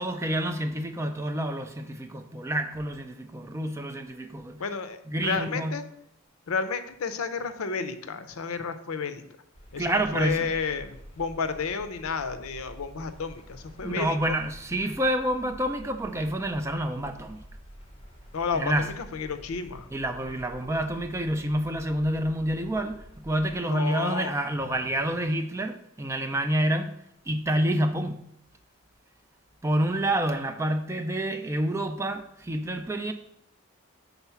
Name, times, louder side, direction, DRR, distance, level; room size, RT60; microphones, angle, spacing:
voice 1, 0.0-4.6 5.1-5.8 9.8-10.5 13.8-17.4 18.5-18.8 19.9-27.0 27.3-28.2 29.6-33.1, right 1 dB, 15° right, 6 dB, 0.3 m, -28 dB
voice 2, 4.6-5.9 6.5-9.2 9.7-14.4 18.3-19.9 23.7-24.4, left 5 dB, 80° left, 10 dB, 0.5 m, -31 dB
sound 1, 9.5-23.6, equal, 25° left, 1.0 m, -48 dB
5.7 x 4.0 x 5.6 m, 0.77 s
head